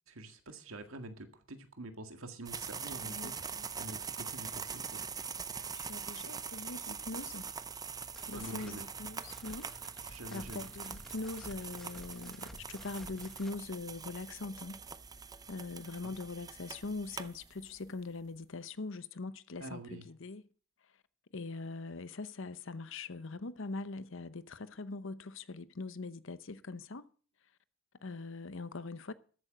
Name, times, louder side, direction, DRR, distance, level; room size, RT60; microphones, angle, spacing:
voice 1, 0.1-3.3 3.8-5.0 8.3-8.8 10.1-10.7 16.0-16.1 19.6-20.0, right 1 dB, 75° right, 1.9 m, -46 dB
sound 1, 2.5-17.9, right 6 dB, 20° right, 0.5 m, -43 dB
voice 2, 3.0-3.7 5.7-7.5 8.3-9.7 10.0-14.8 15.5-20.4 21.3-27.1 28.0-29.1, left 3 dB, 65° left, 0.8 m, -42 dB
sound 2, 8.0-13.6, equal, ahead, 1.1 m, -53 dB
13.5 x 8.7 x 6.3 m
head